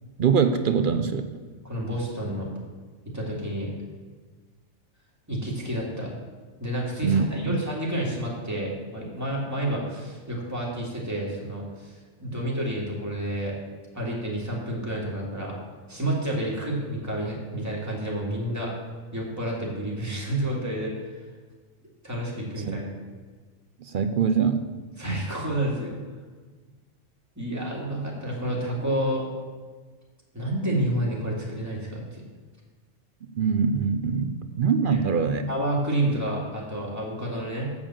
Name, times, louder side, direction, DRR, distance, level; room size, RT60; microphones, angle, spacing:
voice 1, 0.2-1.3 7.0-7.6 22.7-22.8 23.9-24.6 33.3-35.5, right 6 dB, 55° right, 9 dB, 0.6 m, -23 dB
voice 2, 1.6-2.5 3.1-3.7 5.3-6.1 6.6-13.6 13.9-15.5 15.9-18.7 19.1-20.9 22.0-22.9 25.0-25.9 27.4-29.3 30.3-32.3 35.1-35.2 35.5-37.7, right 1 dB, 15° right, -4 dB, 2.3 m, -29 dB
7.5 x 7.0 x 7.4 m, 1.4 s
omnidirectional pair, 1.3 m